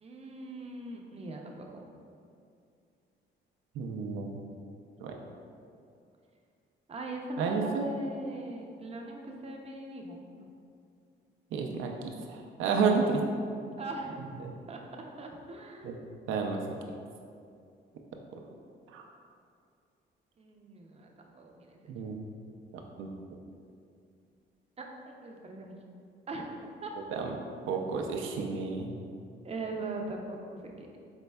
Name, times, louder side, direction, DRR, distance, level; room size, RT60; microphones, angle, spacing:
voice 1, 0.0-1.9 6.9-10.5 13.8-14.2 14.7-14.8 15.2-15.9 20.4-21.9 24.8-24.9 25.2-25.8 26.3-26.9 29.4-31.0, right 2 dB, 30° right, 1 dB, 0.5 m, -41 dB
voice 2, 3.7-4.3 5.0-5.1 7.4-7.9 11.5-13.2 14.4-14.5 15.8-16.0 16.3-16.6 18.9-19.0 21.9-22.2 23.0-23.1 27.1-27.3 27.7-28.9, right 5 dB, 85° right, 2 dB, 0.5 m, -31 dB
4.4 x 3.9 x 2.2 m, 2.4 s
cardioid pair, 90°, 20 cm